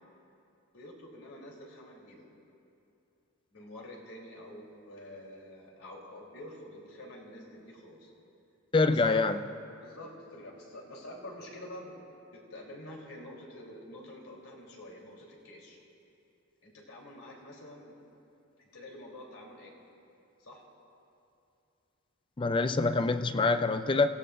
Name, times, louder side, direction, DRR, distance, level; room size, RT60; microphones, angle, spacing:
voice 1, 0.7-2.2 3.5-8.1 8.9-9.2 9.8-11.9 12.3-15.8 16.6-17.9 18.6-19.7 20.4-20.6, left 1 dB, 90° left, -3 dB, 3.3 m, -47 dB
voice 2, 8.7-9.4 22.4-24.1, left 3 dB, 25° left, 10 dB, 0.4 m, -25 dB
28.0 x 16.5 x 2.5 m, 2.7 s
head